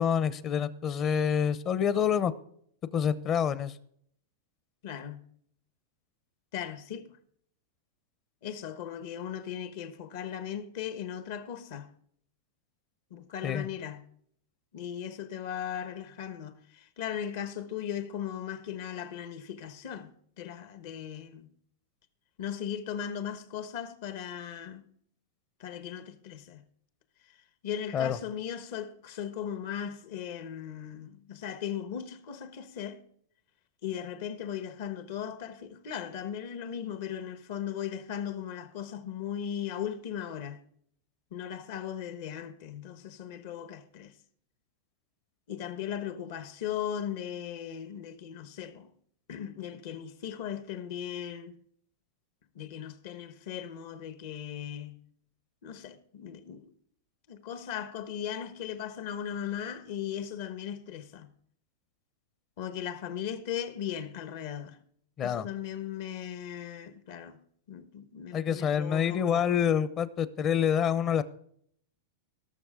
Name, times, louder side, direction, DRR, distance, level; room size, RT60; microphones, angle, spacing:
voice 1, 0.0-2.3 2.9-3.7 13.4-13.7 27.9-28.2 65.2-65.5 68.3-71.2, left 8 dB, 30° left, 0.7 m, -27 dB
voice 2, 4.8-5.3 6.5-7.2 8.4-11.9 13.1-14.0 14.7-21.5 22.4-24.8 25.6-26.6 27.6-33.0 33.8-40.6 41.3-44.1 45.5-48.9 49.3-51.5 52.5-55.0 55.6-56.7 57.3-61.3 62.6-64.8 65.2-67.4 67.7-69.6, left 9 dB, 60° left, 1.3 m, -38 dB
18.5 x 6.8 x 3.7 m
supercardioid pair, 140°, 0 cm